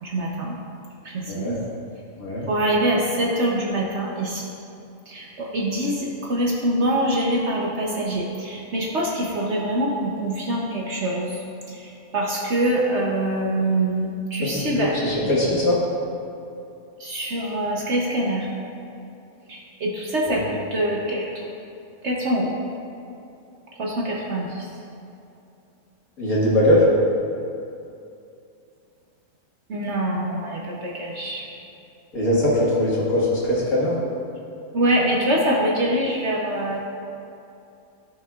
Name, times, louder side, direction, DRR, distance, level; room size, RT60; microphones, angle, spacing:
voice 1, 0.0-0.5 1.0-1.6 2.5-4.5 5.1-15.3 17.0-18.5 19.5-21.4 22.0-22.6 23.8-24.7 29.7-31.5 34.7-36.8, right 1 dB, 60° right, -3 dB, 1.1 m, -24 dB
voice 2, 14.4-15.8 20.3-20.4 26.2-26.8 32.1-33.9, left 1 dB, 85° left, -6 dB, 2.2 m, -21 dB
14.5 x 5.5 x 2.4 m, 2.6 s
omnidirectional pair, 1.5 m